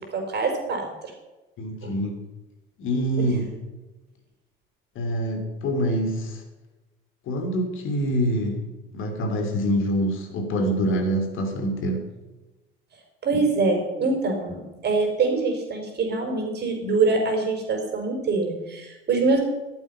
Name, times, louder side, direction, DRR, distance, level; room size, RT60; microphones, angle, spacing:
voice 1, 0.1-0.9 1.8-1.9 13.2-19.4, right 3 dB, 35° right, 3 dB, 4.8 m, -24 dB
voice 2, 1.6-2.2 2.8-3.5 4.9-6.4 7.3-8.7 8.9-12.0, equal, 45° left, 4 dB, 3.0 m, -25 dB
14.5 x 12.0 x 5.7 m, 1.1 s
figure-of-eight pair, 65°, 29 cm